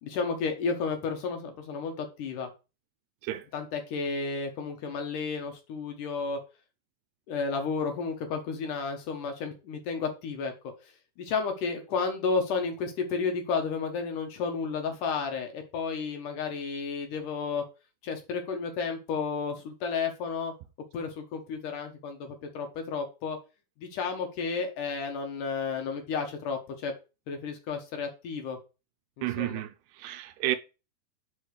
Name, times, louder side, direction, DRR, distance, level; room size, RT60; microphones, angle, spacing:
voice 1, 0.0-2.5 3.5-6.4 7.3-10.5 11.2-17.6 18.0-20.5 20.9-23.4 23.8-26.9 27.3-28.6 29.2-29.6, left 5 dB, 65° left, 2.6 m, -32 dB
voice 2, 29.2-29.7 30.0-30.6, right 15 dB, 90° right, 2.9 m, -30 dB
6.6 x 4.6 x 6.5 m
omnidirectional pair, 4.6 m